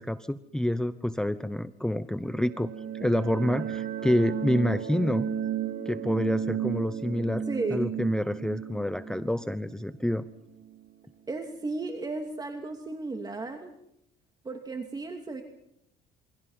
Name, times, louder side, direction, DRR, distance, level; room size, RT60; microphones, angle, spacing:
voice 1, 0.0-2.7 3.0-5.3 5.9-7.4 7.7-10.2, left 1 dB, 5° left, 12 dB, 0.9 m, -28 dB
sound 1, 2.2-10.8, right 9 dB, 60° right, 2.9 m, -34 dB
voice 2, 7.5-7.9 11.3-13.7 14.4-15.4, right 3 dB, 25° right, 4 dB, 2.7 m, -34 dB
28.0 x 24.0 x 5.7 m, 0.76 s
cardioid pair, 110°, 17 cm